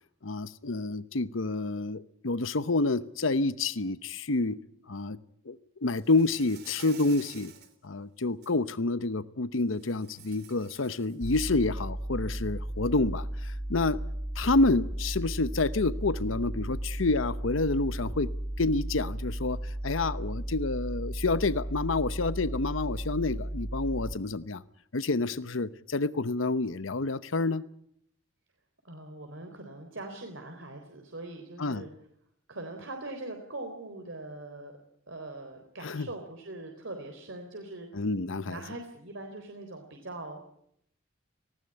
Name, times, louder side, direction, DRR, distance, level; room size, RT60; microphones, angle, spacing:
voice 1, 0.2-4.6 4.9-5.2 5.5-5.6 5.8-7.5 7.8-14.0 14.4-18.3 18.6-19.6 19.8-24.6 24.9-27.6 31.6-31.9 35.8-36.1 37.9-38.6, left 3 dB, 75° left, 0.9 m, -28 dB
Insect, 6.0-7.7 8.2-8.5 9.7-11.6, right 8 dB, 55° right, 3.3 m, -51 dB
sound 1, 11.2-24.1, right 1 dB, 20° right, 1.0 m, -35 dB
voice 2, 28.8-31.9 32.5-34.7 35.1-37.9 38.4-40.5, right 2 dB, 70° right, 3.9 m, -42 dB
19.5 x 18.0 x 9.9 m
head